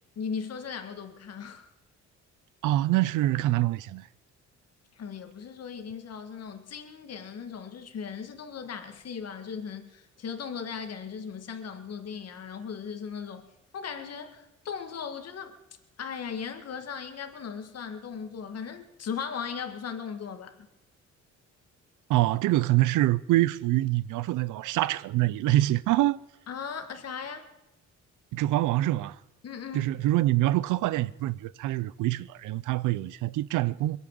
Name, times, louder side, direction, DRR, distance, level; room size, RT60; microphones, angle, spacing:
voice 1, 0.2-1.7 5.0-13.5 13.7-15.5 16.0-20.7 26.5-27.5 29.4-29.9, left 6 dB, 55° left, 2.0 m, -37 dB
voice 2, 2.6-4.1 22.1-26.2 28.3-29.2 29.7-34.0, right 16 dB, 90° right, 0.6 m, -25 dB
21.5 x 8.4 x 7.8 m
cardioid pair, 90°, 30 cm